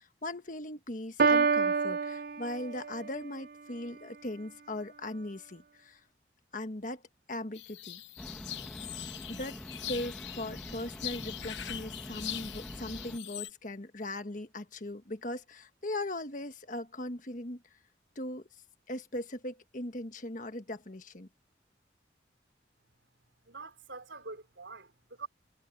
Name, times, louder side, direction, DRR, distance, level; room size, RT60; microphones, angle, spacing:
voice 1, 0.0-6.0 6.5-7.0 7.3-8.0 9.3-9.6 9.9-17.6 18.1-18.5 18.9-21.3, left 1 dB, 45° left, 1.5 m, -39 dB
Piano, 1.2-3.2, right 5 dB, 50° right, 0.6 m, -27 dB
sound 1, 7.5-13.5, left 12 dB, 80° left, 1.0 m, -42 dB
sound 2, 8.2-13.2, equal, 5° left, 2.0 m, -45 dB
voice 2, 23.4-25.3, right 4 dB, 85° right, 4.6 m, -45 dB
head